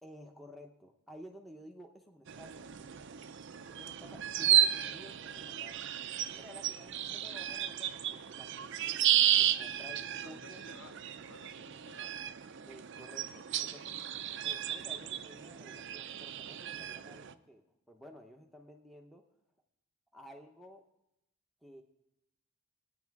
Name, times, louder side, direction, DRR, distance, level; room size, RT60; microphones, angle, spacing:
voice 1, 0.0-2.6 3.7-6.0 6.3-9.0 9.4-10.6 12.7-14.0 14.4-19.2 20.1-20.9 21.6-21.8, equal, ahead, 2 dB, 0.8 m, -53 dB
sound 1, 2.3-17.3, right 11 dB, 55° right, 0.5 m, -33 dB
voice 2, 10.0-12.1, left 1 dB, 65° left, 2 dB, 2.1 m, -55 dB
20.0 x 9.2 x 4.7 m, 0.87 s
head